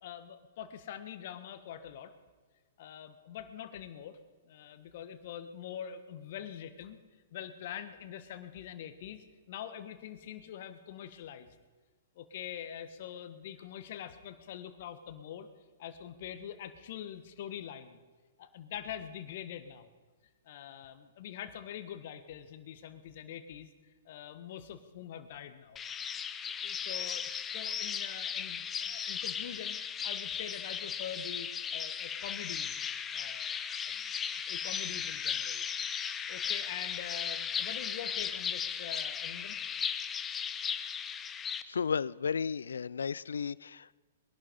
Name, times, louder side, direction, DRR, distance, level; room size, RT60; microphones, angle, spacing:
voice 1, 0.0-2.1 2.8-4.2 4.4-7.0 7.3-11.6 12.1-15.5 15.8-18.0 18.4-19.9 20.4-23.7 24.0-25.8 26.1-26.3 26.6-29.8 30.0-35.6 36.3-39.6, left 9 dB, 55° left, 11 dB, 1.4 m, -44 dB
sound 1, 25.8-41.6, left 7 dB, 20° left, 0.8 m, -36 dB
voice 2, 41.7-44.0, left 6 dB, 80° left, 22 dB, 0.4 m, -33 dB
21.0 x 11.5 x 5.3 m, 1.4 s
hypercardioid pair, 115°, 0 cm